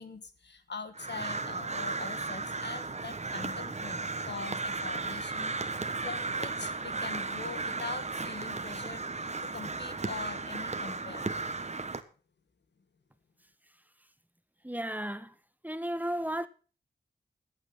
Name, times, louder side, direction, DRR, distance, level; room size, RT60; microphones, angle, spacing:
voice 1, 0.0-11.4, left 4 dB, 80° left, 1.9 m, -43 dB
Crow, 0.9-12.0, right 3 dB, 40° right, 1.4 m, -35 dB
voice 2, 14.6-15.3 15.6-16.5, right 1 dB, 10° right, 1.1 m, -34 dB
14.5 x 9.1 x 5.7 m
wide cardioid pair, 65°, 18 cm